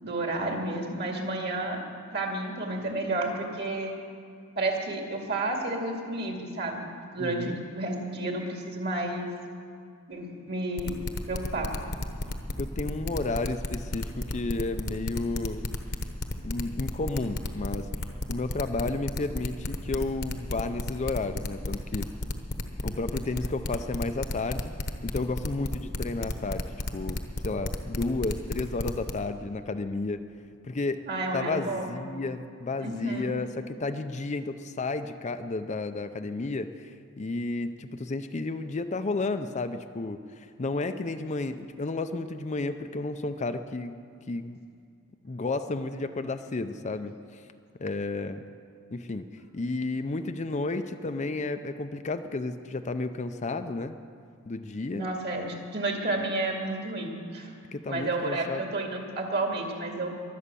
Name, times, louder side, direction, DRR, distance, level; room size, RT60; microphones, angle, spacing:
voice 1, 0.0-1.8 2.1-3.9 4.6-9.3 10.1-10.9 11.3-11.8 31.1-32.0 32.8-33.4 54.9-57.5 57.8-60.1, right 2 dB, 50° right, 1 dB, 2.4 m, -31 dB
voice 2, 7.2-7.6 12.6-15.7 16.4-17.9 18.3-22.1 22.8-24.7 25.0-26.7 26.9-30.2 30.6-31.0 31.3-33.5 33.8-44.0 44.3-44.6 45.2-47.4 47.8-48.4 48.9-49.2 49.5-54.0 54.5-55.1 57.7-58.6, left 3 dB, 35° left, 8 dB, 0.5 m, -32 dB
sound 1, 10.8-29.1, left 2 dB, 50° left, 1.1 m, -32 dB
22.5 x 8.5 x 6.9 m, 2.3 s
head